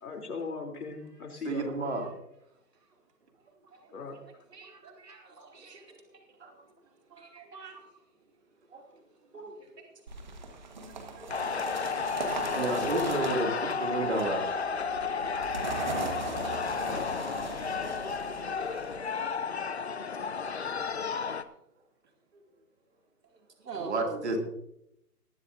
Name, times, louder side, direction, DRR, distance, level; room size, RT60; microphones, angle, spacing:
voice 1, 0.0-1.9 3.9-4.2, left 4 dB, 65° left, 3 dB, 3.2 m, -38 dB
voice 2, 1.4-2.1 6.4-6.5 8.7-8.8 9.7-9.8 11.2-11.3 12.6-14.5 17.6-17.7 23.7-24.4, right 2 dB, 45° right, 3 dB, 2.5 m, -31 dB
voice 3, 4.1-5.8 7.1-7.8 9.3-9.7 13.9-14.1 14.8-15.6 18.6-18.9 23.6-24.3, right 4 dB, 85° right, 2 dB, 2.6 m, -46 dB
sound 1, 10.1-19.0, right 4 dB, 30° right, 1.3 m, -39 dB
sound 2, 11.3-21.4, left 5 dB, 45° left, 0.7 m, -32 dB
20.0 x 11.5 x 2.6 m, 0.79 s
hypercardioid pair, 170°, 47 cm